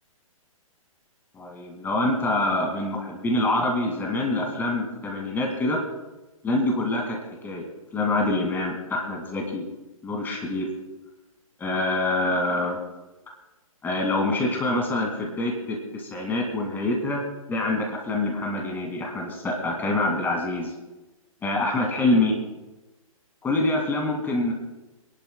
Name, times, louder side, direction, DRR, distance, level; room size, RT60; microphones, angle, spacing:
voice 1, 1.3-5.8 6.4-7.7 7.9-9.6 10.0-10.7 11.6-12.8 13.8-20.7 21.4-22.4 23.4-24.5, left 2 dB, 10° left, 1 dB, 2.2 m, -25 dB
29.0 x 11.0 x 2.3 m, 1.1 s
figure-of-eight pair, 125°, 18 cm